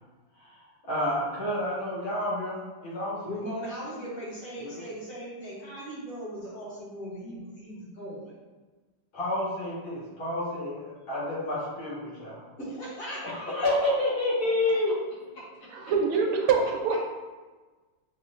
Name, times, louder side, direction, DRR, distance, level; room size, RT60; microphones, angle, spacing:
voice 1, 0.9-3.2 4.6-4.8 9.1-12.4 13.2-15.0 17.0-17.1, left 1 dB, 80° left, -10 dB, 2.6 m, -29 dB
voice 2, 3.2-8.3 12.6-13.6 15.4-15.5 15.8-15.9, equal, 50° left, -6 dB, 1.2 m, -38 dB
voice 3, 15.7-17.1, right 5 dB, 85° right, 2 dB, 1.5 m, -25 dB
6.0 x 2.1 x 2.4 m, 1.3 s
omnidirectional pair, 2.3 m